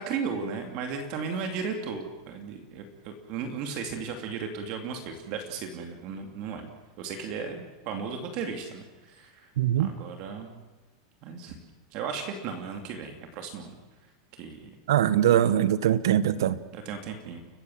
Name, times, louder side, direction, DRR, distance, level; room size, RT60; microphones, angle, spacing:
voice 1, 0.0-6.7 7.0-9.5 9.8-10.5 11.2-11.6 11.9-13.8 14.4-14.8 16.7-17.4, right 5 dB, 35° right, 5 dB, 2.6 m, -35 dB
voice 2, 9.6-9.9 14.9-16.6, right 11 dB, 85° right, 15 dB, 1.3 m, -22 dB
30.0 x 15.5 x 7.8 m, 1.2 s
supercardioid pair, 180°, 2 cm